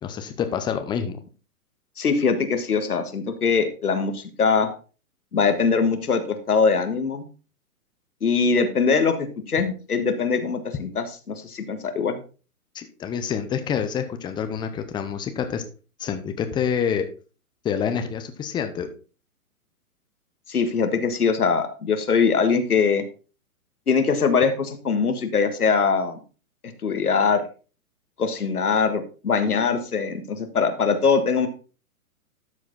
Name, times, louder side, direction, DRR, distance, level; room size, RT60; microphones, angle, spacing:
voice 1, 0.0-1.2 12.7-15.6 16.0-17.1 17.6-18.9, left 7 dB, 10° left, 7 dB, 0.7 m, -27 dB
voice 2, 2.0-4.7 5.3-7.2 8.2-12.2 20.5-23.0 23.9-26.2 26.8-27.4 28.2-31.5, left 5 dB, 85° left, 7 dB, 1.7 m, -22 dB
12.5 x 4.8 x 4.0 m, 0.36 s
hypercardioid pair, 125°, 44 cm